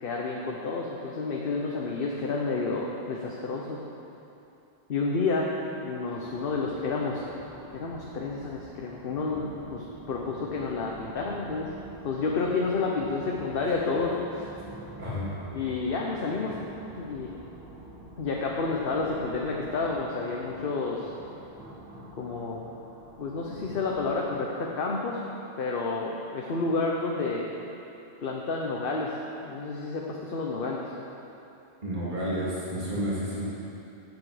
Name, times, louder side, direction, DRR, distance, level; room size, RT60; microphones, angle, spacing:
voice 1, 0.0-3.8 4.9-5.5 5.8-7.2 7.7-11.7 12.0-14.4 15.5-16.6 17.0-17.3 18.2-21.1 22.2-22.6 23.2-25.2 25.6-27.5 28.2-29.1 29.4-30.8, left 3 dB, 60° left, -2 dB, 1.0 m, -30 dB
sound 1, 6.2-24.1, right 1 dB, 20° right, 1.4 m, -47 dB
voice 2, 15.0-15.3 31.8-33.6, equal, 50° right, -8 dB, 2.5 m, -31 dB
11.5 x 8.3 x 4.9 m, 2.9 s
omnidirectional pair, 1.1 m